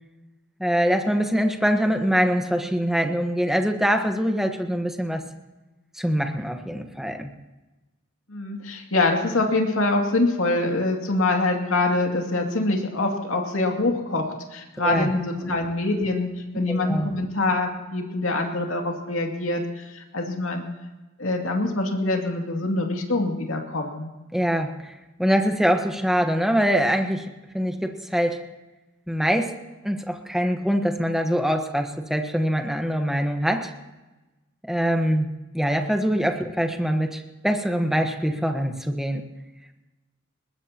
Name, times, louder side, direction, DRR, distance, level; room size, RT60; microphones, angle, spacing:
voice 1, 0.6-5.2 6.0-7.3 14.8-15.1 15.4-15.5 16.7-17.1 24.3-24.9 25.2-27.3 27.5-28.4 29.1-29.5 29.8-33.7 34.7-35.3 35.5-39.2, equal, ahead, 5 dB, 1.2 m, -23 dB
voice 2, 8.3-16.3 16.5-20.6 21.2-24.1, left 2 dB, 70° left, 2 dB, 2.5 m, -24 dB
21.0 x 20.0 x 2.9 m, 1.1 s
head